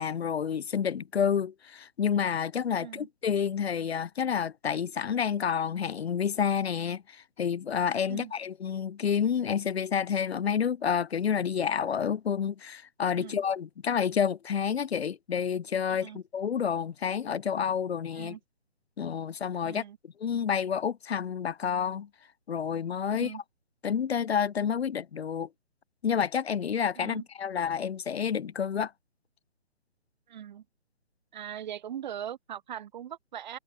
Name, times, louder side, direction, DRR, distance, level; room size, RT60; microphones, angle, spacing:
voice 1, 0.0-18.4 19.0-19.8 20.2-22.1 22.5-23.3 23.8-25.5 26.0-28.9, left 7 dB, 60° left, 0.8 m, -29 dB
voice 2, 15.9-16.2 18.1-18.4 19.6-20.0 23.1-23.4 27.0-27.2 30.3-30.6 31.3-33.6, right 10 dB, 40° right, 1.9 m, -40 dB
figure-of-eight pair, 145°, 35 cm